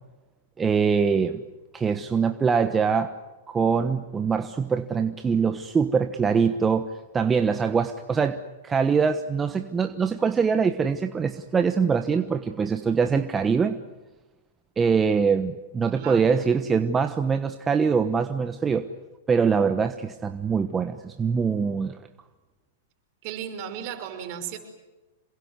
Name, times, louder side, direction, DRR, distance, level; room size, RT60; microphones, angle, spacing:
voice 1, 0.6-1.4 1.7-3.1 3.5-13.8 14.8-18.9 19.3-22.0, right 6 dB, 15° right, 8 dB, 1.2 m, -23 dB
voice 2, 15.9-16.4 23.2-24.6, right 9 dB, 45° right, 6 dB, 5.7 m, -35 dB
27.5 x 21.5 x 9.7 m, 1.1 s
hypercardioid pair, 125°, 0 cm